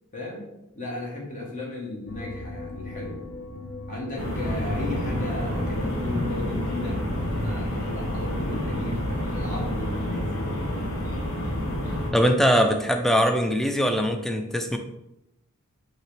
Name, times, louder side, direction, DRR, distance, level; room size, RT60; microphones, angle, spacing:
voice 1, 0.1-0.5 0.7-3.2 3.9-9.0 9.3-10.4, left 2 dB, 35° left, -2 dB, 1.0 m, -35 dB
sound 1, 2.1-8.4, left 2 dB, 55° left, 0.7 m, -41 dB
sound 2, 4.2-12.1, equal, 70° left, 1.2 m, -28 dB
voice 2, 12.1-14.8, equal, ahead, 5 dB, 0.3 m, -22 dB
5.5 x 2.9 x 3.2 m, 0.89 s
head